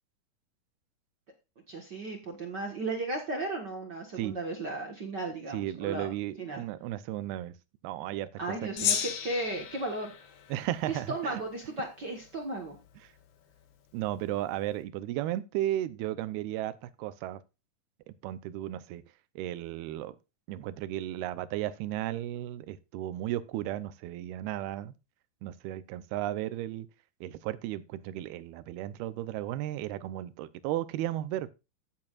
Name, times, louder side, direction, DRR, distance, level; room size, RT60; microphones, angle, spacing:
voice 1, 1.7-6.1 6.4-6.6 8.4-10.3 10.9-12.8, right 2 dB, 55° right, 1.2 m, -35 dB
voice 2, 5.5-7.5 7.8-8.6 8.8-8.9 10.5-11.4 13.0-13.1 13.9-17.4 18.1-19.0 19.4-20.2 20.5-24.9 25.4-26.9 27.2-31.5, right 13 dB, 85° right, 2.7 m, -34 dB
Gong, 8.8-11.4, left 9 dB, 70° left, 3.0 m, -34 dB
15.5 x 7.5 x 2.5 m
omnidirectional pair, 4.4 m